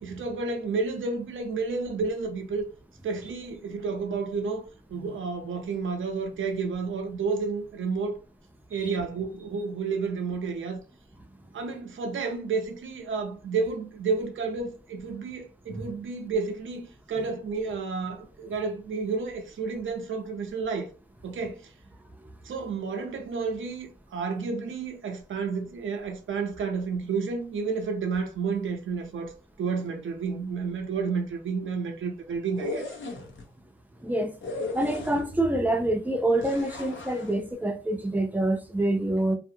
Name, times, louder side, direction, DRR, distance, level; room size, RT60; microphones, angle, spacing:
voice 1, 0.0-2.7 3.0-4.6 4.9-8.2 8.7-10.8 11.5-20.9 21.2-21.7 22.4-32.9, right 4 dB, 80° right, 0.6 m, -31 dB
sound 1, 32.4-33.4 34.4-35.5 36.4-37.4, left 3 dB, 70° left, 0.8 m, -37 dB
voice 2, 34.0-34.3 34.7-39.4, right 1 dB, 10° right, 0.5 m, -26 dB
2.7 x 2.4 x 2.7 m
wide cardioid pair, 135°, 20 cm